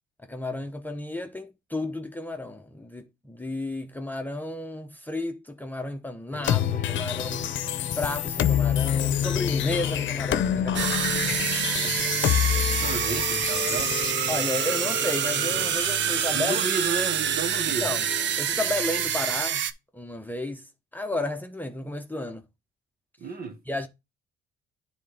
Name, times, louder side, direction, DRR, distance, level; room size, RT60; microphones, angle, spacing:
voice 1, 0.3-7.5 8.0-11.5 12.6-12.7 14.3-16.6 17.8-18.0 18.4-19.6 19.9-22.4 23.7-23.9, left 2 dB, 10° left, 0.9 m, -32 dB
sound 1, 6.3-19.6, left 6 dB, 45° left, 0.9 m, -37 dB
sound 2, 6.4-14.1, left 10 dB, 70° left, 0.7 m, -27 dB
sound 3, 10.7-19.7, right 9 dB, 65° right, 0.7 m, -27 dB
voice 2, 11.6-12.2 12.5-13.9 16.3-18.0 23.2-23.6, right 4 dB, 50° right, 1.7 m, -33 dB
9.6 x 3.9 x 3.4 m
cardioid pair, 90°, 20 cm